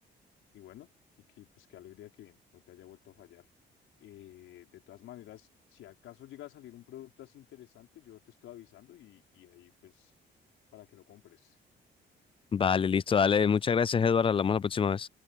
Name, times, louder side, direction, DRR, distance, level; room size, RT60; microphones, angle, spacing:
voice 1, 0.5-0.9 1.2-3.5 4.0-10.1 10.7-11.6, left 13 dB, 85° left, 4.9 m, -51 dB
voice 2, 12.5-15.1, left 6 dB, 25° left, 0.4 m, -25 dB
cardioid pair, 90°, 20 cm